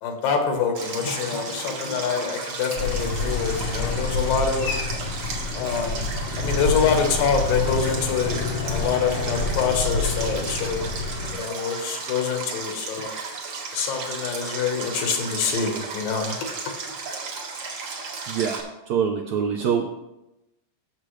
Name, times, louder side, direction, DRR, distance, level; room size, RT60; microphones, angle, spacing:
voice 1, 0.0-4.7 5.5-6.0 6.4-10.9 11.3-13.1 13.7-16.4, left 6 dB, 80° left, 4 dB, 2.9 m, -25 dB
Stream, 0.8-18.6, right 4 dB, 55° right, 2.4 m, -34 dB
sound 1, 2.8-11.3, left 3 dB, 60° left, 1.5 m, -28 dB
voice 2, 18.3-20.0, right 7 dB, 80° right, 3 dB, 1.6 m, -25 dB
15.0 x 6.7 x 3.2 m, 0.94 s
omnidirectional pair, 3.9 m